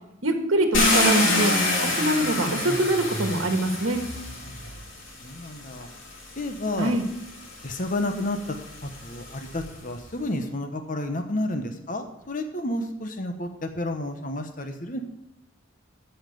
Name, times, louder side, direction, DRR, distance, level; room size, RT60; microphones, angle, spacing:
voice 1, 0.2-1.6 2.0-4.0 6.8-7.0, right 1 dB, 80° right, 5 dB, 1.5 m, -24 dB
Car, 0.7-4.8 5.8-5.9 6.4-9.7, left 2 dB, 75° left, 3.2 m, -26 dB
voice 2, 5.2-5.9 6.4-6.9 7.6-8.6 8.8-15.0, left 1 dB, 40° left, 6 dB, 1.0 m, -31 dB
13.0 x 5.7 x 6.8 m, 0.87 s
head